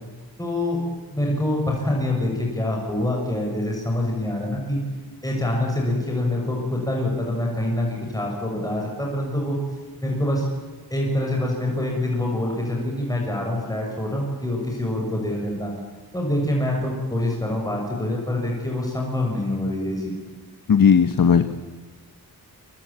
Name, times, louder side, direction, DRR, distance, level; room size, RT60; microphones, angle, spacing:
voice 1, 0.4-0.8 1.1-4.8 5.2-9.6 10.0-10.5 10.9-15.7 16.1-20.2, left 1 dB, 10° left, -1 dB, 6.5 m, -25 dB
voice 2, 20.7-21.5, left 7 dB, 65° left, 9 dB, 1.3 m, -16 dB
28.5 x 24.0 x 8.8 m, 1.3 s
wide cardioid pair, 115°, 37 cm